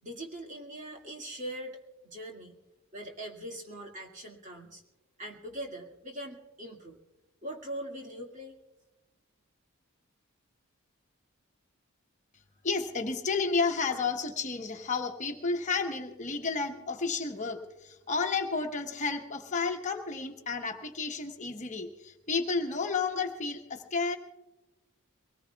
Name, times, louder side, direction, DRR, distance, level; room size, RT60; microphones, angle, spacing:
voice 1, 0.0-2.6 2.9-4.8 5.2-7.0 7.4-8.6, right 1 dB, 35° right, 1 dB, 2.1 m, -41 dB
voice 2, 12.6-24.2, left 4 dB, 35° left, 3 dB, 1.1 m, -31 dB
23.5 x 19.5 x 2.3 m, 1.0 s
head